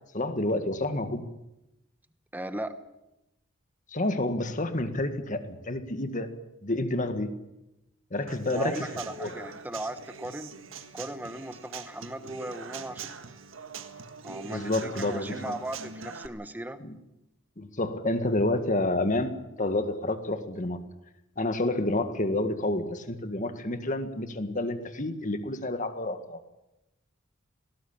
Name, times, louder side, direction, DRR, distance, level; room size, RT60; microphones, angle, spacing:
voice 1, 0.1-1.2 3.9-6.3 6.6-7.3 8.1-8.8 9.2-9.3 14.4-15.5 16.8-16.9 17.6-20.8 21.4-26.4, left 2 dB, 40° left, 8 dB, 1.9 m, -29 dB
voice 2, 2.3-2.7 8.5-10.5 10.9-13.1 14.2-16.8, right 1 dB, 10° right, 10 dB, 1.2 m, -37 dB
Human voice / Acoustic guitar / Drum, 8.3-16.3, right 5 dB, 75° right, 1.6 m, -43 dB
19.0 x 18.0 x 8.6 m, 0.92 s
head